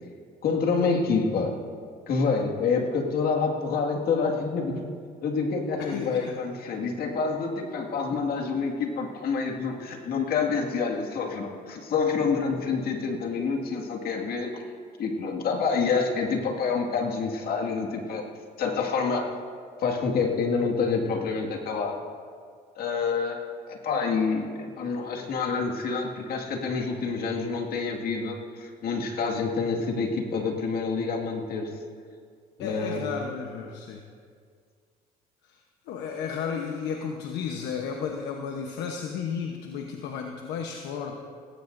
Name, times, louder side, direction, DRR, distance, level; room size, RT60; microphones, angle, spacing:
voice 1, 0.4-1.6 2.1-4.8 5.2-14.6 15.0-18.3 18.6-19.3 19.8-22.0 22.8-31.7 32.6-33.2, left 4 dB, 65° left, 1 dB, 2.0 m, -27 dB
voice 2, 5.8-6.4 8.1-8.2 32.6-34.0 35.4-35.6 35.9-41.2, left 6 dB, 85° left, 2 dB, 1.0 m, -33 dB
18.5 x 16.5 x 2.6 m, 2.1 s
cardioid pair, 110°, 17 cm